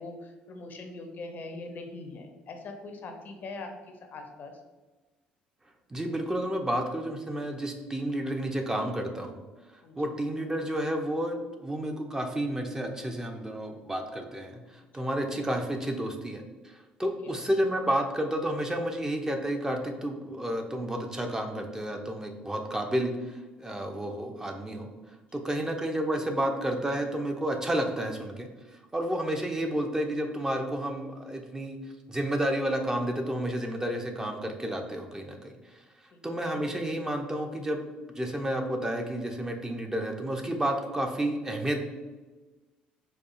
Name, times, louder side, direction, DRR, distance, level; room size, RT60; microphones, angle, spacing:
voice 1, 0.0-4.6 9.8-10.1 17.2-17.4 25.5-25.6 36.1-36.4, left 3 dB, 45° left, 4 dB, 0.5 m, -42 dB
voice 2, 5.9-9.4 10.0-16.5 17.0-24.9 25.3-28.5 28.9-31.8 32.1-35.5 36.2-37.9 38.2-41.8, right 1 dB, 15° right, 4 dB, 0.4 m, -31 dB
4.3 x 2.3 x 2.3 m, 1.2 s
figure-of-eight pair, 55°, 4 cm